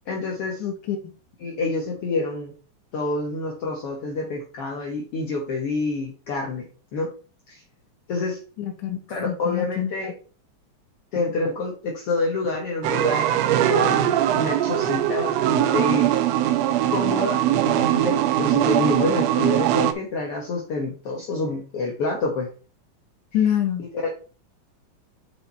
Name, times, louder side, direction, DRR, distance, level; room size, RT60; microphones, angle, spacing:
voice 1, 0.1-0.6 1.4-2.5 2.9-7.1 7.5-7.6 8.1-8.4 9.1-10.1 11.1-16.2 16.9-22.5 23.9-24.1, left 3 dB, 55° left, 0 dB, 2.0 m, -28 dB
voice 2, 0.6-1.1 8.6-9.0 9.2-10.1 23.3-23.9, left 10 dB, 85° left, 4 dB, 2.5 m, -26 dB
sound 1, 12.8-19.9, right 12 dB, 75° right, 1.7 m, -21 dB
7.0 x 5.0 x 4.1 m, 0.36 s
omnidirectional pair, 3.4 m